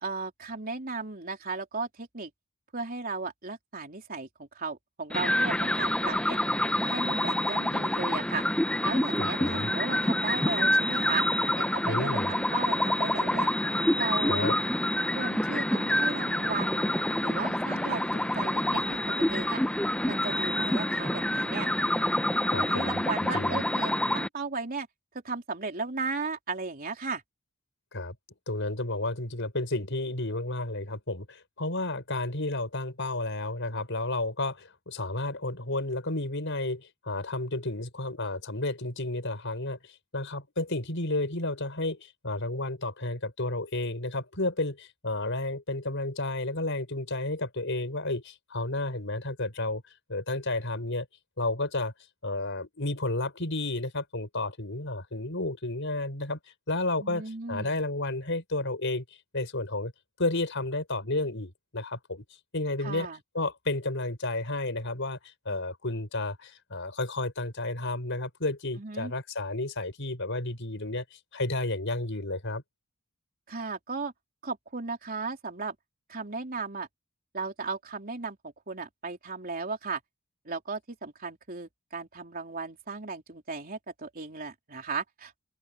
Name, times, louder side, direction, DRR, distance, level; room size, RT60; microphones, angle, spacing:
voice 1, 0.0-2.3 2.7-6.4 6.8-8.4 8.8-11.3 11.6-13.5 14.0-14.5 15.1-16.9 17.2-19.0 19.3-19.6 20.1-21.7 22.6-24.9 25.2-27.2 57.0-57.7 62.8-63.2 68.8-69.1 73.5-74.1 74.4-75.8 76.1-76.9 77.3-80.0 80.5-85.4, right 4 dB, 40° right, 3.6 m, -35 dB
sound 1, 5.1-24.3, left 1 dB, 5° left, 0.6 m, -27 dB
voice 2, 9.2-9.7 11.9-12.3 14.3-14.5 22.5-23.0 23.3-23.6 27.9-28.2 28.5-49.8 50.1-51.1 51.4-51.9 52.2-59.0 59.3-59.9 60.2-62.2 62.5-63.1 63.3-72.6, left 2 dB, 60° left, 5.7 m, -32 dB
open air
head